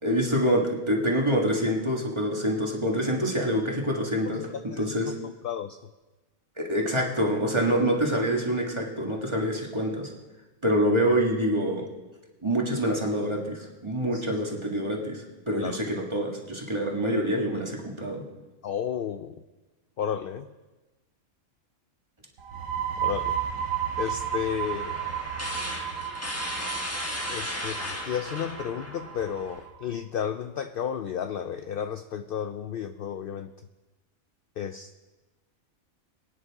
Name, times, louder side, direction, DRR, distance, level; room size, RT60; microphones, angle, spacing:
voice 1, 0.0-5.2 6.6-10.1 10.6-11.8 12.4-18.2, equal, 20° right, -1 dB, 1.8 m, -26 dB
voice 2, 4.3-5.8 14.1-14.2 15.6-15.8 18.6-19.4 20.0-20.5 23.0-23.4 24.0-25.0 27.3-33.5 34.6-34.9, left 8 dB, 65° left, 10 dB, 0.5 m, -33 dB
sound 1, 22.4-29.8, right 9 dB, 80° right, 1.4 m, -33 dB
sound 2, 23.1-29.6, left 1 dB, 10° left, 1.2 m, -37 dB
23.0 x 9.4 x 3.6 m, 1.2 s
omnidirectional pair, 1.4 m